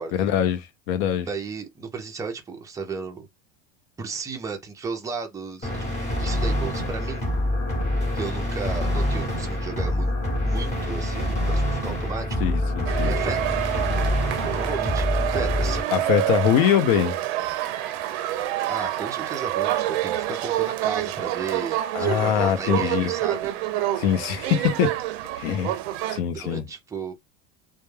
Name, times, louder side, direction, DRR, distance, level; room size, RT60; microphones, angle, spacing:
voice 1, 0.1-1.3 12.4-13.1 15.9-17.2 21.9-23.1 24.0-25.0 25.4-25.8 26.1-26.6, left 9 dB, 65° left, 0.6 m, -23 dB
voice 2, 1.2-3.3 4.0-5.8 6.2-7.3 8.1-10.1 10.4-12.5 13.0-13.6 14.4-15.9 18.6-23.5 26.3-27.1, right 4 dB, 10° right, 0.4 m, -34 dB
sound 1, 5.6-15.8, left 1 dB, 20° left, 1.0 m, -26 dB
sound 2, 12.9-26.2, right 13 dB, 65° right, 0.5 m, -27 dB
2.2 x 2.1 x 3.1 m
supercardioid pair, 140°, 33 cm